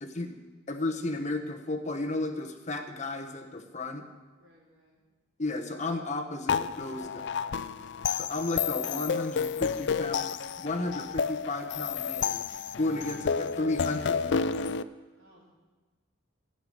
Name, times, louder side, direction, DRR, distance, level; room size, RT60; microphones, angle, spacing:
voice 1, 0.0-0.3 0.7-4.1 5.4-7.2 8.2-12.5 12.8-14.8, left 2 dB, 35° left, 4 dB, 1.1 m, -33 dB
voice 2, 4.4-5.0 6.8-7.8 15.1-15.5, equal, 75° right, -5 dB, 4.5 m, -60 dB
sound 1, 6.5-14.8, left 6 dB, 60° left, 0.4 m, -31 dB
14.0 x 6.9 x 9.2 m, 1.3 s
head